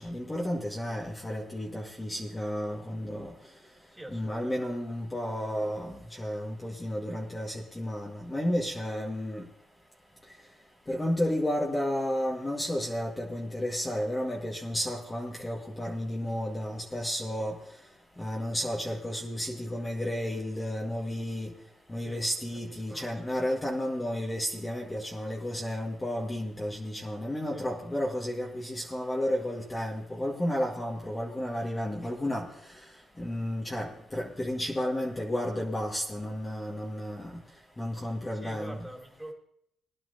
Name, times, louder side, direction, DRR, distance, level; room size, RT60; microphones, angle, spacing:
voice 1, 0.0-3.3 4.1-9.4 10.9-17.6 18.2-21.5 21.9-32.5 33.2-37.3 37.8-38.8, equal, 15° left, -2 dB, 1.7 m, -32 dB
voice 2, 3.9-4.8 22.0-22.2 22.7-23.4 27.5-27.7 38.0-38.1 38.4-39.3, right 1 dB, 5° right, 0 dB, 2.8 m, -46 dB
20.5 x 11.0 x 2.7 m, 0.72 s
cardioid pair, 90°, 0 cm